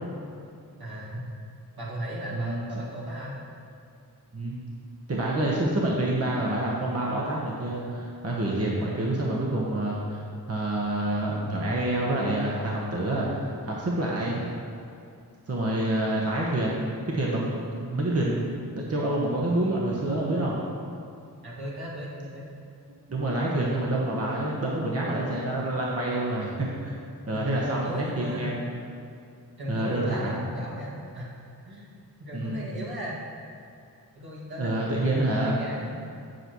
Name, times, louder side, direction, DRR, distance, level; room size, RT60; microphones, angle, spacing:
voice 1, 0.8-1.3 1.8-3.4 16.0-16.3 21.4-22.4 27.3-28.5 29.6-31.3 31.6-31.9 32.2-33.2 34.2-36.1, equal, 75° right, -6 dB, 2.0 m, -36 dB
voice 2, 2.3-2.7 4.3-4.6 5.1-14.4 15.5-18.6 18.9-20.6 23.1-26.9 27.3-28.7 29.7-30.4 32.3-32.7 34.6-35.6, right 1 dB, 40° right, -4 dB, 1.1 m, -27 dB
8.0 x 7.7 x 3.0 m, 2.5 s
wide cardioid pair, 75°, 37 cm